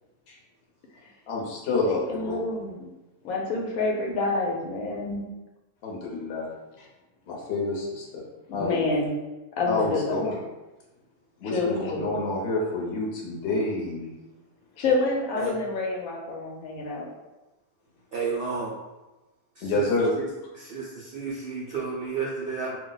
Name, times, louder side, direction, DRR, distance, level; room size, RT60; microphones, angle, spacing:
voice 1, 1.3-2.5 5.8-6.5 7.3-8.2 8.5-8.9 9.7-10.3 11.4-14.1 19.6-20.1, left 3 dB, 55° left, -3 dB, 0.9 m, -28 dB
voice 2, 1.8-2.9 3.2-5.3 8.5-9.2 9.6-10.2 11.4-12.2 14.8-17.1, left 3 dB, 80° left, 0 dB, 1.0 m, -28 dB
voice 3, 18.1-18.7 19.5-19.9 20.2-20.3 20.5-22.8, right 5 dB, 70° right, -5 dB, 0.5 m, -31 dB
2.5 x 2.1 x 3.8 m, 1.1 s
omnidirectional pair, 1.5 m